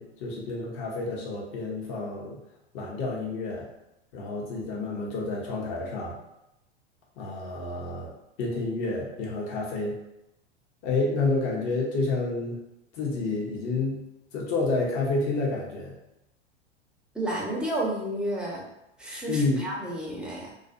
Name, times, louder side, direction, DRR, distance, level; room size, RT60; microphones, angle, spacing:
voice 1, 0.0-2.4 2.7-3.7 4.1-6.1 7.2-8.1 8.4-10.0 10.8-12.6 12.9-14.0 14.3-15.9 19.3-19.6, left 3 dB, 45° left, -3 dB, 0.8 m, -29 dB
voice 2, 17.1-18.6 19.0-20.5, right 1 dB, 5° right, -4 dB, 0.5 m, -31 dB
2.4 x 2.1 x 2.5 m, 0.88 s
hypercardioid pair, 95°, 33 cm